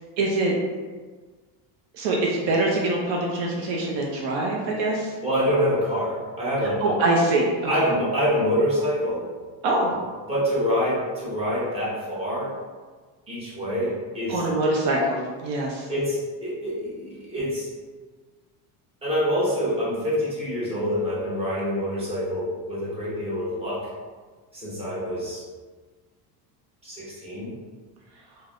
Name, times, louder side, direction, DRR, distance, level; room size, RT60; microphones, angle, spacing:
voice 1, 0.2-0.6 1.9-5.1 6.8-7.5 7.8-7.9 9.6-9.9 14.3-15.9, right 2 dB, 65° right, -1 dB, 0.6 m, -24 dB
voice 2, 5.2-6.8 7.7-9.2 10.3-12.5 13.3-14.4 15.9-17.7 19.0-23.9 24.5-25.4 26.8-27.5, equal, 15° right, -9 dB, 0.9 m, -26 dB
3.3 x 2.1 x 2.4 m, 1.4 s
cardioid pair, 145°, 46 cm